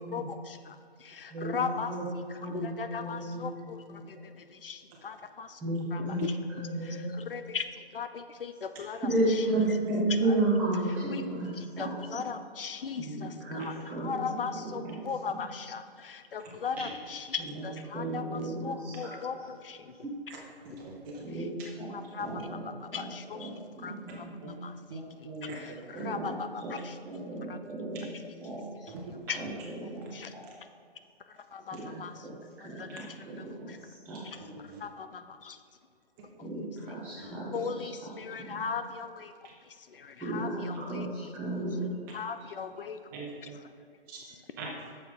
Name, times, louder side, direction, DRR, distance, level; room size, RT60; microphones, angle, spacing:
voice 1, 0.0-1.9 2.3-5.6 5.9-6.4 6.8-9.8 10.3-10.4 11.1-11.2 11.5-20.0 20.3-20.4 21.3-21.5 21.9-24.3 24.6-27.0 27.5-27.6 28.1-28.3 29.3-29.4 30.1-30.3 31.3-32.3 32.6-33.8 34.2-35.6 36.4-36.5 37.2-39.3 39.6-41.3 42.1-43.0 43.4-43.7 44.3-44.4, left 6 dB, 60° left, 10 dB, 0.6 m, -39 dB
voice 2, 1.3-2.1 2.4-3.5 3.9-4.0 5.6-6.3 6.5-7.1 9.1-11.9 13.0-15.0 15.3-15.4 17.5-17.7 17.9-19.1 20.0-20.1 21.2-21.9 22.2-22.7 22.9-23.0 23.4-24.6 25.9-26.3 26.6-26.7 27.0-28.1 28.4-28.6 29.8-30.2 31.7-32.3 32.6-34.2 36.4-37.9 38.5-38.6 40.2-41.9, right 2 dB, 5° right, -10 dB, 0.7 m, -33 dB
voice 3, 20.3-21.2 22.3-22.4 24.4-24.5 24.9-25.5 25.9-26.0 28.9-29.0 34.4-34.8 43.1-43.5 44.1-44.2 44.6-44.7, right 3 dB, 20° right, -3 dB, 1.4 m, -42 dB
8.8 x 7.0 x 3.8 m, 2.3 s
hypercardioid pair, 155°, 31 cm